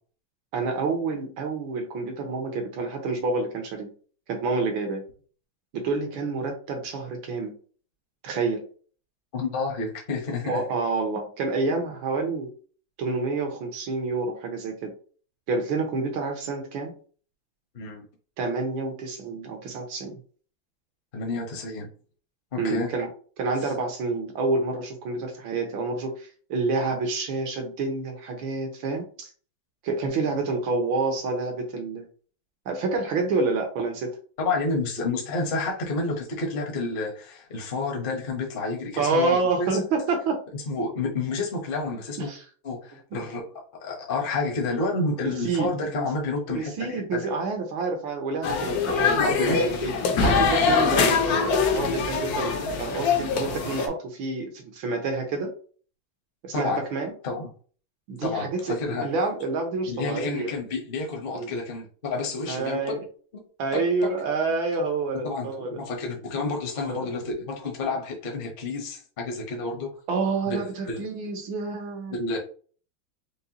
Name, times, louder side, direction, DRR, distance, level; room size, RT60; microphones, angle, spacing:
voice 1, 0.5-3.9 4.3-5.0 5.7-7.5 8.2-8.6 10.4-12.5 13.0-14.9 15.5-16.9 18.4-20.2 22.6-23.1 23.4-29.3 29.8-32.1 32.7-34.1 39.0-40.4 42.2-42.4 43.1-43.2 45.2-46.1 46.5-49.2 49.5-49.9 50.2-55.5 56.4-57.1 58.1-60.5 61.3-61.5 62.5-63.0 63.6-65.8 66.8-67.0 70.1-72.2, right 3 dB, 75° right, 3 dB, 1.8 m, -28 dB
voice 2, 9.3-10.6 17.7-18.0 21.1-21.9 22.5-22.9 23.6-23.7 34.4-39.8 40.5-42.3 42.6-43.5 43.8-46.7 47.1-47.3 49.2-49.6 56.5-56.8 57.2-57.5 58.2-59.1 59.9-63.0 63.3-63.4 63.7-63.8 65.2-69.9 70.5-71.1 72.1-72.4, left 3 dB, 40° left, 1 dB, 0.8 m, -30 dB
sound 1, 48.4-53.9, left 5 dB, 60° left, 1.0 m, -23 dB
5.3 x 2.2 x 2.8 m, 0.41 s
omnidirectional pair, 2.2 m